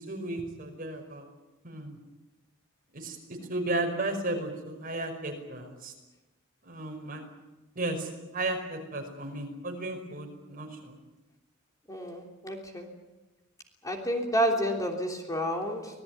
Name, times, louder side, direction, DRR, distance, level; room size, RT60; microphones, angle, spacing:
voice 1, 0.1-1.3 1.6-2.0 2.9-3.2 3.5-5.9 6.6-7.3 7.8-11.0, right 2 dB, 45° right, 3 dB, 5.4 m, -34 dB
voice 2, 11.9-12.9 13.8-16.0, equal, 15° left, 2 dB, 3.2 m, -30 dB
26.0 x 18.5 x 9.6 m, 1.1 s
head